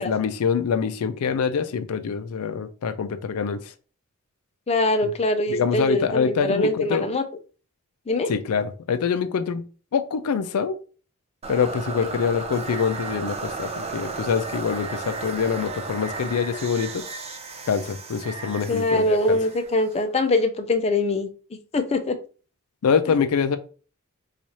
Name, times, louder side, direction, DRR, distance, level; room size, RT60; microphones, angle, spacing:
voice 1, 0.0-3.6 5.0-5.1 5.5-7.1 8.3-9.6 9.9-10.8 11.5-17.0 17.7-19.4 22.8-23.6, left 6 dB, 90° left, 0.4 m, -25 dB
voice 2, 4.7-7.2 8.1-8.3 12.0-12.1 18.7-21.3 21.7-22.2, left 2 dB, 30° left, 0.4 m, -23 dB
sound 1, 11.4-20.4, right 4 dB, 30° right, 0.4 m, -34 dB
3.0 x 2.4 x 4.1 m
head